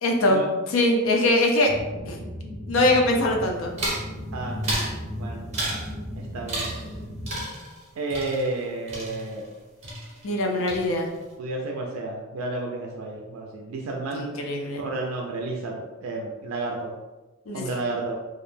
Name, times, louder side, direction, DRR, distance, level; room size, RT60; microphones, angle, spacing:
voice 1, 0.0-1.7 2.0-2.2 2.7-3.7 10.2-11.1 14.1-14.8 17.5-17.7, left 1 dB, 70° left, 2 dB, 0.5 m, -22 dB
sound 1, 1.7-7.4, equal, 5° left, 0.5 m, -35 dB
sound 2, 3.8-4.1 4.6-5.0 5.5-5.9 6.5-7.0 7.3-9.6 9.8-10.4 10.7-11.2, right 1 dB, 35° right, 0.9 m, -32 dB
voice 2, 5.1-5.5 6.1-6.7 8.0-9.5 11.4-14.2 14.8-17.0 17.5-18.1, right 2 dB, 85° right, 0 dB, 0.3 m, -31 dB
2.4 x 2.1 x 3.1 m, 1.2 s
head